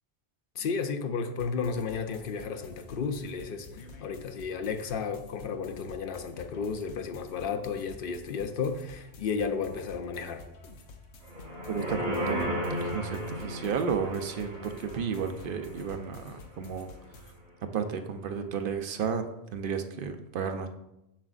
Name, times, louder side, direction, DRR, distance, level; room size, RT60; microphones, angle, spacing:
voice 1, 0.6-3.7 4.0-10.4, left 5 dB, 60° left, 8 dB, 0.7 m, -33 dB
sound 1, 1.4-17.4, left 3 dB, 85° left, 1.0 m, -50 dB
sound 2, 11.2-16.6 17.0-17.1, equal, 80° right, 2.9 m, -35 dB
voice 2, 11.7-16.9 17.2-17.3 17.6-19.2 19.5-20.7, right 6 dB, 60° right, 7 dB, 0.6 m, -33 dB
7.4 x 6.0 x 2.4 m, 0.86 s
omnidirectional pair, 1.1 m